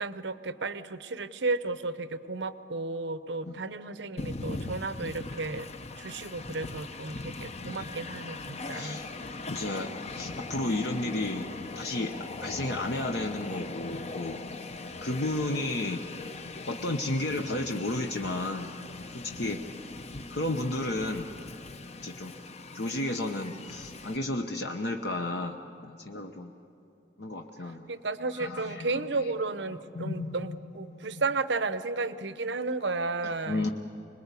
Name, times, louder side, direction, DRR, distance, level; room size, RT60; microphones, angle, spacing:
voice 1, 0.0-5.7 6.0-9.0 27.9-33.7, right 3 dB, 85° right, 12 dB, 0.9 m, -33 dB
Train, 4.2-24.2, left 3 dB, 40° left, 0.8 m, -40 dB
voice 2, 8.7-9.2 9.5-11.5 11.7-12.1 12.4-14.4 15.0-16.0 16.7-18.7 19.1-19.6 20.3-21.3 22.0-22.3 22.7-26.5 27.2-27.9 28.4-29.3 29.9-30.5 31.1-31.2 33.2-33.7, left 2 dB, 65° left, 3 dB, 1.0 m, -33 dB
26.0 x 20.5 x 8.3 m, 2.9 s
head